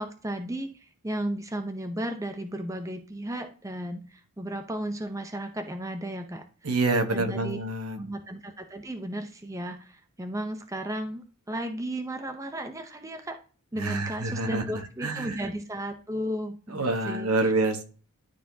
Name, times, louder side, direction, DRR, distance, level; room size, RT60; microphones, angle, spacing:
voice 1, 0.0-6.7 7.1-7.6 8.0-13.4 13.7-17.5, right 1 dB, 15° right, 6 dB, 0.6 m, -34 dB
voice 2, 6.6-8.0 13.8-14.6 15.0-15.3 16.7-17.8, right 2 dB, 85° right, 6 dB, 1.2 m, -27 dB
12.0 x 4.1 x 2.7 m, 0.38 s
head